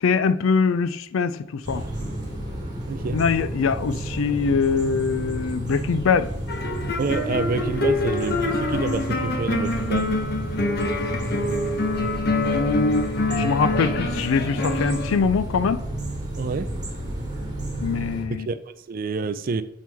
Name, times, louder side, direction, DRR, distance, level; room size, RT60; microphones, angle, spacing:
voice 1, 0.0-1.8 3.1-6.3 12.5-13.1 13.3-15.8 17.8-18.5, left 5 dB, 85° left, 0.4 m, -23 dB
sound 1, 1.6-18.2, right 1 dB, 20° right, 1.4 m, -31 dB
voice 2, 2.9-3.2 7.0-10.1 16.4-16.7 18.5-19.6, right 4 dB, 45° right, 0.4 m, -28 dB
sound 2, 6.5-15.2, left 2 dB, 55° left, 0.8 m, -26 dB
6.0 x 4.5 x 3.5 m
head